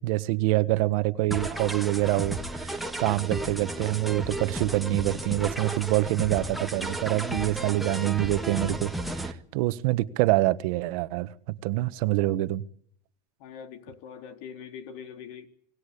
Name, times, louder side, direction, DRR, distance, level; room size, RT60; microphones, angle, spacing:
voice 1, 0.0-11.3 11.6-12.6, right 18 dB, 60° right, 1.4 m, -26 dB
sound 1, 1.3-9.3, right 1 dB, ahead, 1.6 m, -33 dB
voice 2, 13.4-15.5, left 7 dB, 60° left, 3.9 m, -42 dB
26.5 x 19.5 x 8.5 m
supercardioid pair, 145°, 20 cm